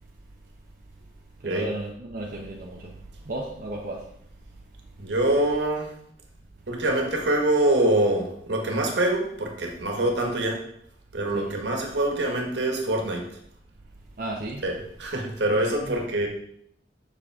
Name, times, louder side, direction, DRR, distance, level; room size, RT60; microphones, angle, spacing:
voice 1, 1.4-4.2 11.3-11.5 14.2-14.6 15.5-16.0, right 1 dB, 55° right, -1 dB, 0.9 m, -34 dB
voice 2, 5.0-5.9 6.7-10.6 11.1-13.2 14.6-16.3, right 1 dB, 80° right, 2 dB, 1.6 m, -25 dB
7.5 x 6.6 x 3.6 m, 0.70 s
head